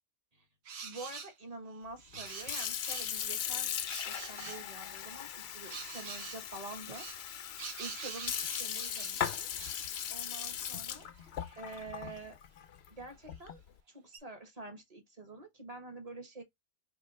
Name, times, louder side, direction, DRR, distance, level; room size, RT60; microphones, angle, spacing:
sound 1, 0.7-1.3 2.0-3.2 3.9-4.6 5.7-6.4 6.9-10.1 10.7-10.8 11.0-12.2 13.4-13.5 14.1-14.2, right 5 dB, 70° right, 1.1 m, -45 dB
voice 1, 0.8-3.7 4.0-9.5 10.1-11.1 11.5-12.4 12.9-13.6 13.9-16.4, right 3 dB, 35° right, 1.3 m, -47 dB
Sink (filling or washing) / Fill (with liquid), 2.1-13.7, left 9 dB, 70° left, 0.8 m, -39 dB
4.5 x 3.1 x 3.1 m
omnidirectional pair, 1.1 m